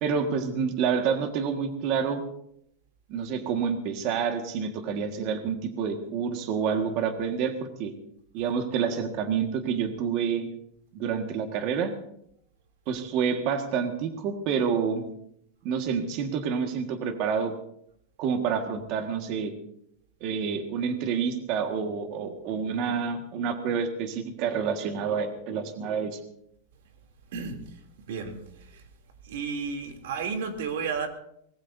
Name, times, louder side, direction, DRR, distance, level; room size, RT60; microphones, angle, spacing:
voice 1, 0.0-2.2 3.1-7.9 8.3-10.5 10.9-11.9 12.9-15.0 15.6-17.5 18.2-19.5 20.2-26.2, right 6 dB, 45° right, 1.7 m, -28 dB
voice 2, 28.1-28.4 28.7-28.8 29.2-31.1, right 5 dB, 75° right, 3.0 m, -32 dB
23.5 x 20.0 x 2.7 m
supercardioid pair, 155°, 0 cm